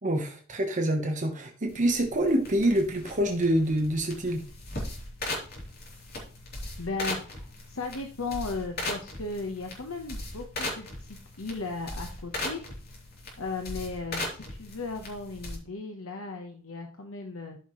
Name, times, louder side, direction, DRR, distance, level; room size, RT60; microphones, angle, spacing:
voice 1, 0.0-4.4, right 1 dB, 40° right, 3 dB, 1.2 m, -26 dB
sound 1, 1.7-15.6, left 2 dB, 50° left, 3.3 m, -38 dB
voice 2, 6.8-12.6 13.4-17.6, left 3 dB, 80° left, 3 dB, 1.1 m, -36 dB
13.5 x 5.8 x 3.2 m, 0.40 s
head